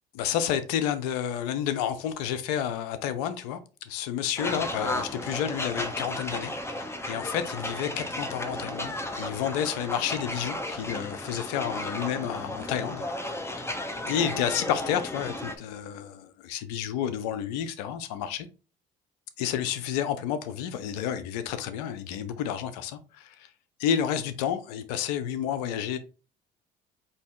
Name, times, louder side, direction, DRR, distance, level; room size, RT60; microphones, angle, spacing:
voice 1, 0.1-3.6 3.9-13.1 14.1-18.5 19.4-23.5 23.8-26.0, left 9 dB, 85° left, 0.6 m, -30 dB
sound 1, 4.4-15.6, left 1 dB, 15° left, 0.8 m, -34 dB
4.1 x 2.8 x 3.6 m
supercardioid pair, 70°, 20 cm